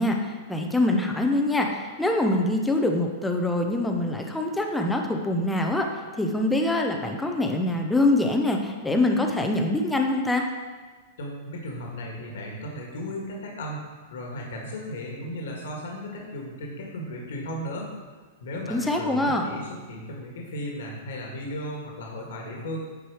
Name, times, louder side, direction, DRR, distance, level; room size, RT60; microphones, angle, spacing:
voice 1, 0.0-5.9 6.2-10.4 18.7-19.5, left 2 dB, 5° left, 2 dB, 0.5 m, -24 dB
voice 2, 11.2-13.8 14.1-17.9 18.4-22.8, equal, 75° left, -1 dB, 1.7 m, -35 dB
9.1 x 4.8 x 4.8 m, 1.4 s
supercardioid pair, 170°, 0 cm